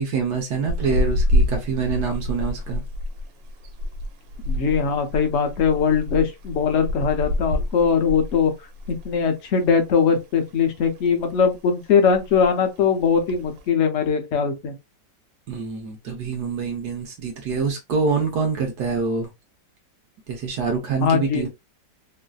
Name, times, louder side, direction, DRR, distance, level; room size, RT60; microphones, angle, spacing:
voice 1, 0.0-2.8 15.5-19.3 20.3-21.5, right 5 dB, 70° right, 1.2 m, -25 dB
sound 1, 0.7-9.2 9.5-9.7 10.1-10.9 11.2-11.6 11.9-12.0 12.1-12.6 13.1-13.6, left 1 dB, 90° right, 1.3 m, -27 dB
voice 2, 4.5-8.5 8.9-14.8 21.0-21.5, left 6 dB, 65° left, 0.7 m, -21 dB
3.1 x 2.5 x 2.2 m
omnidirectional pair, 1.9 m